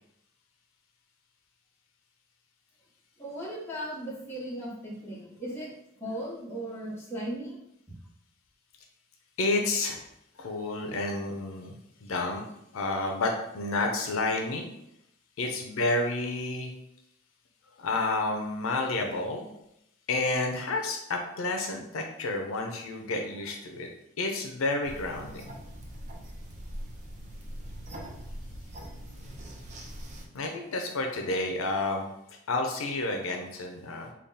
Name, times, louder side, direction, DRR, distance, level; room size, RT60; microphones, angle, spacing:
voice 1, 3.2-5.7 6.0-7.6, right 1 dB, 10° left, -7 dB, 1.2 m, -37 dB
voice 2, 9.4-10.0 10.4-11.8 12.0-12.4 12.7-14.7 15.4-16.7 17.8-19.5 20.1-23.9 24.2-25.5 30.3-34.1, left 2 dB, 80° left, 2 dB, 0.5 m, -30 dB
sound 1, 24.8-30.3, equal, 35° right, 0.6 m, -42 dB
3.5 x 2.2 x 3.9 m, 0.79 s
head